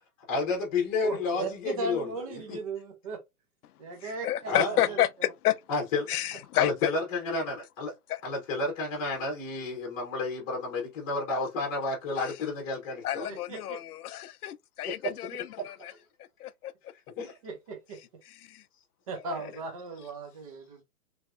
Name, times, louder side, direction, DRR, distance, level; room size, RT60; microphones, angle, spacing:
voice 1, 0.3-2.6 4.4-4.8 5.7-6.1 6.5-7.9 8.2-13.3 15.6-15.9 17.2-17.4, left 3 dB, 25° left, 1.0 m, -31 dB
voice 2, 1.0-3.2 3.8-5.3 13.3-13.8 17.2-18.0 19.1-20.8, right 3 dB, 25° right, 0.6 m, -38 dB
voice 3, 4.0-5.6 6.1-6.9 8.1-8.2 13.0-15.9 16.4-16.7 18.5-18.6, left 13 dB, 80° left, 0.5 m, -30 dB
3.3 x 2.7 x 2.4 m
hypercardioid pair, 160°, 45 cm